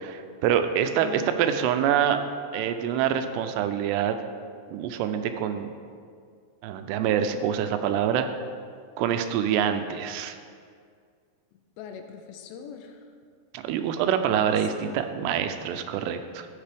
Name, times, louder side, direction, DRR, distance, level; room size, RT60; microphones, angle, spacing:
voice 1, 0.0-2.2 2.5-4.2 4.7-5.7 6.6-8.3 9.0-10.4 13.5-16.5, right 9 dB, 85° right, 8 dB, 2.7 m, -26 dB
voice 2, 1.0-1.4 11.8-13.1 14.3-15.1, left 6 dB, 90° left, 6 dB, 2.9 m, -41 dB
13.5 x 7.4 x 3.4 m, 2.1 s
omnidirectional pair, 4.9 m